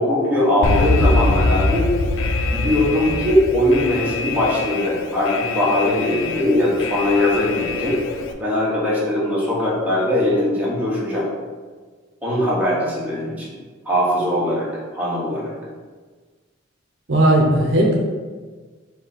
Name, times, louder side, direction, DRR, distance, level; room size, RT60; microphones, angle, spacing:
voice 1, 0.0-1.9 2.4-8.0 8.4-11.3 12.2-13.5 13.8-15.5, left 1 dB, 10° right, -7 dB, 1.2 m, -20 dB
Alarm, 0.6-8.3, left 2 dB, 70° left, 0.4 m, -23 dB
voice 2, 17.1-18.0, right 1 dB, 65° right, -1 dB, 0.7 m, -16 dB
4.8 x 2.8 x 3.9 m, 1.4 s
head